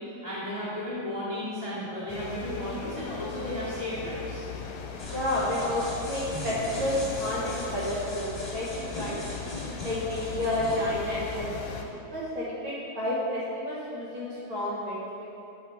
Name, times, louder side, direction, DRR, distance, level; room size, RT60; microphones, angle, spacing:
voice 1, 0.0-4.5, left 1 dB, 40° left, -10 dB, 0.4 m, -34 dB
sound 1, 2.1-11.8, left 6 dB, 90° left, 2.1 m, -39 dB
sound 2, 5.0-11.4, left 1 dB, 20° left, 1.0 m, -40 dB
voice 2, 5.0-15.3, left 1 dB, 60° right, -7 dB, 1.4 m, -31 dB
8.1 x 4.4 x 4.5 m, 2.8 s
omnidirectional pair, 3.4 m